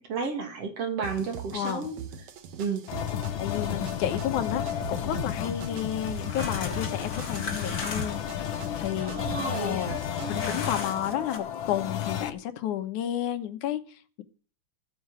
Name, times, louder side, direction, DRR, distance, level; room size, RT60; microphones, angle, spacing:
voice 1, 0.1-2.0 2.6-2.8 9.0-10.6, right 5 dB, 55° right, 5 dB, 3.4 m, -32 dB
sound 1, 1.0-11.1, right 8 dB, 70° right, 2.5 m, -43 dB
voice 2, 1.5-1.9 3.4-8.2 8.8-9.2 9.6-9.9 10.3-14.2, left 11 dB, 85° left, 9 dB, 2.6 m, -31 dB
sound 2, 2.9-12.3, left 9 dB, 65° left, 1.3 m, -32 dB
sound 3, 6.1-8.3 10.3-11.4, left 3 dB, 30° left, 2.8 m, -37 dB
14.5 x 7.9 x 8.0 m, 0.41 s
omnidirectional pair, 3.4 m